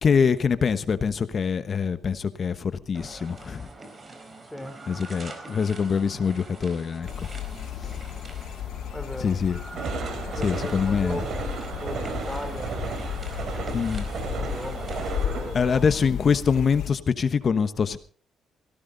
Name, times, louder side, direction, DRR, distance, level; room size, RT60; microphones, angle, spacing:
voice 1, 0.0-3.6 4.9-7.1 9.2-9.6 10.4-11.2 13.7-14.1 15.5-18.0, left 6 dB, 45° left, 12 dB, 1.2 m, -24 dB
sound 1, 2.9-15.5, right 2 dB, 30° right, 4.1 m, -44 dB
sound 2, 7.0-16.9, left 9 dB, 80° left, 1.2 m, -34 dB
voice 2, 8.9-9.4 10.2-13.6 14.4-15.8, left 1 dB, 5° left, 7 dB, 3.6 m, -38 dB
sound 3, 9.7-16.0, right 5 dB, 65° right, 3.4 m, -34 dB
17.5 x 17.0 x 4.0 m, 0.44 s
cardioid pair, 90°, 0 cm